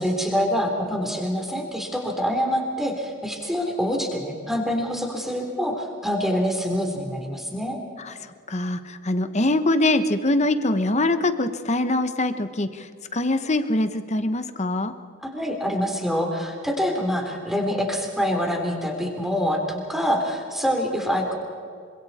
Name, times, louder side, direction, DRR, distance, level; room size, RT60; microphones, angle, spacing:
voice 1, 0.0-7.8 15.2-21.3, equal, ahead, 1 dB, 3.6 m, -25 dB
voice 2, 8.5-14.9, left 2 dB, 35° left, 10 dB, 1.2 m, -23 dB
27.5 x 25.0 x 4.3 m, 2.3 s
head